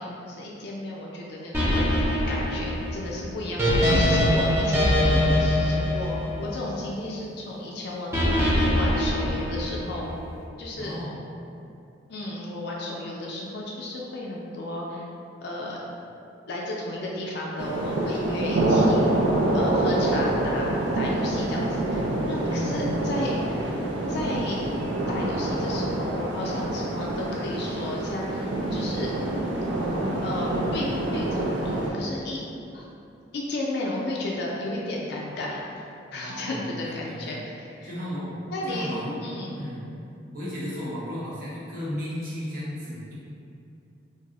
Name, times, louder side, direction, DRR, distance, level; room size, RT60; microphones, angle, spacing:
voice 1, 0.0-2.0 2.3-8.1 8.5-10.1 10.6-11.0 12.1-15.0 15.4-15.8 16.5-19.1 19.5-20.7 20.9-23.4 24.1-24.6 25.1-29.1 30.2-32.4 32.7-32.9 33.3-35.9 36.1-37.9 38.5-38.9 39.2-39.6, left 1 dB, 60° left, -3 dB, 0.4 m, -33 dB
sound 1, 1.5-6.8 8.1-10.1, equal, 15° right, 0.4 m, -23 dB
voice 2, 10.8-11.2 22.4-22.9 36.1-37.4 37.8-39.8 40.3-43.1, equal, 50° right, -9 dB, 0.8 m, -34 dB
sound 2, 17.6-31.9, right 1 dB, 70° right, 0.4 m, -26 dB
2.6 x 2.0 x 3.6 m, 2.7 s
head